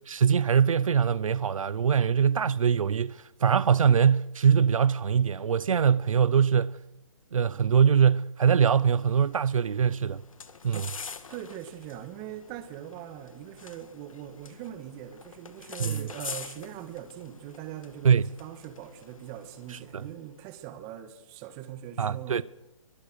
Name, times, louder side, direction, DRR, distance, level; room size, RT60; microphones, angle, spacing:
voice 1, 0.1-6.8 7.3-10.2 10.6-10.8 15.8-16.1 18.0-18.3 19.9-20.0 22.0-22.4, right 7 dB, 80° right, 0.7 m, -23 dB
sound 1, 8.7-20.4, left 5 dB, 85° left, 2.1 m, -45 dB
voice 2, 11.3-22.4, right 11 dB, 20° right, 2.1 m, -41 dB
24.5 x 20.0 x 6.6 m
hypercardioid pair, 160°, 17 cm